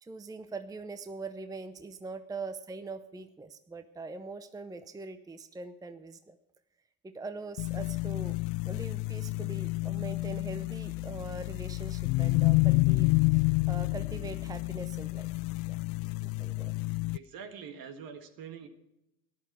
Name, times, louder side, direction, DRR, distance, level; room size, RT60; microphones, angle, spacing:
voice 1, 0.0-6.4 7.0-8.4 8.7-15.3 15.7-15.8 16.2-16.7, right 3 dB, 10° right, 11 dB, 0.7 m, -42 dB
sound 1, 7.6-17.2, left 23 dB, 60° left, 0.5 m, -29 dB
voice 2, 16.9-18.7, right 7 dB, 55° right, 7 dB, 1.8 m, -45 dB
13.5 x 11.0 x 4.7 m, 0.87 s
hypercardioid pair, 70°, 41 cm